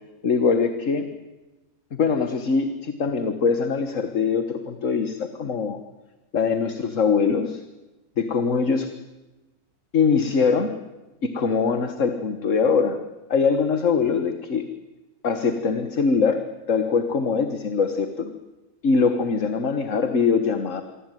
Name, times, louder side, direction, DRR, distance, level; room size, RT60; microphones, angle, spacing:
voice 1, 0.2-1.1 1.9-5.8 6.3-7.6 8.2-8.9 9.9-10.7 11.2-13.0 13.3-14.7 15.2-18.3 18.8-20.8, left 5 dB, 55° left, 9 dB, 1.8 m, -22 dB
27.5 x 23.0 x 9.3 m, 1.1 s
omnidirectional pair, 1.6 m